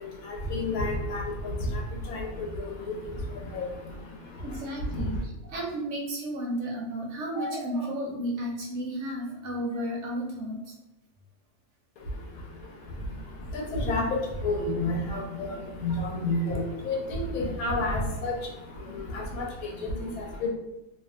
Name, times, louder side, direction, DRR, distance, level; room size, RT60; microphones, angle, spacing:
voice 1, 0.5-1.2 2.1-2.7 3.5-3.6 13.5-14.1 14.4-15.5 15.8-18.3 19.1-19.2 19.8-19.9 20.4-20.5, left 2 dB, 85° left, 0 dB, 1.1 m, -29 dB
voice 2, 4.4-10.6 15.6-15.7 16.2-16.5, right 1 dB, 65° right, -1 dB, 0.8 m, -33 dB
2.5 x 2.2 x 2.5 m, 0.95 s
omnidirectional pair, 1.5 m